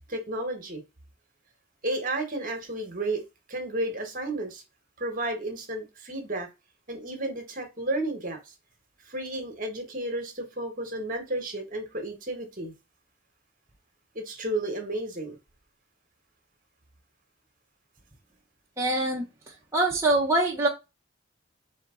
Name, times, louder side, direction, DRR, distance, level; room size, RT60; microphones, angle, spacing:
voice 1, 0.1-0.8 1.8-3.2 3.5-4.6 5.0-6.5 6.9-8.5 9.1-12.7 14.1-15.4, right 1 dB, 45° right, 4 dB, 1.2 m, -32 dB
voice 2, 18.8-19.3 19.7-20.7, right 2 dB, 15° right, -3 dB, 0.7 m, -23 dB
4.4 x 2.8 x 3.6 m, 0.25 s
head